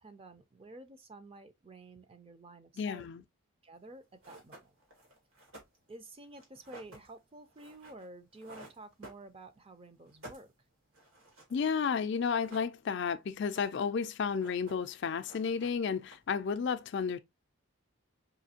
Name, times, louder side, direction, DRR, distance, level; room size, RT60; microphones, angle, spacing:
voice 1, 0.0-3.1 3.6-4.7 5.9-10.5, right 2 dB, 25° right, 0.4 m, -51 dB
voice 2, 2.8-3.2 11.5-17.2, left 6 dB, 55° left, 0.4 m, -32 dB
sound 1, 3.8-3.9 4.2-9.7 10.0-11.6 11.8-11.9 12.2-13.1 13.4-14.0 14.2-15.0 15.2-16.5, right 1 dB, 80° right, 2.0 m, -54 dB
5.0 x 2.7 x 2.7 m
head